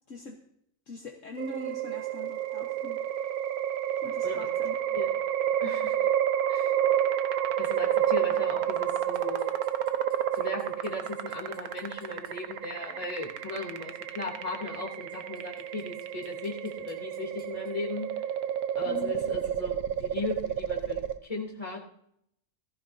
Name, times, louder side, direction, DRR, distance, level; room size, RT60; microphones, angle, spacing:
voice 1, 0.1-0.4 0.9-3.0 4.0-5.0 18.8-19.2, left 3 dB, 55° left, 1 dB, 1.5 m, -42 dB
sound 1, 1.4-21.2, right 10 dB, 75° right, 1.3 m, -30 dB
voice 2, 5.6-5.9 6.5-6.7 7.6-9.5 10.3-18.1 18.8-21.8, left 2 dB, 20° left, -1 dB, 2.8 m, -37 dB
sound 2, 9.1-12.4 14.7-14.8 15.1-17.7, left 1 dB, 30° right, 6.5 m, -61 dB
18.5 x 14.5 x 2.7 m, 0.73 s
omnidirectional pair, 1.6 m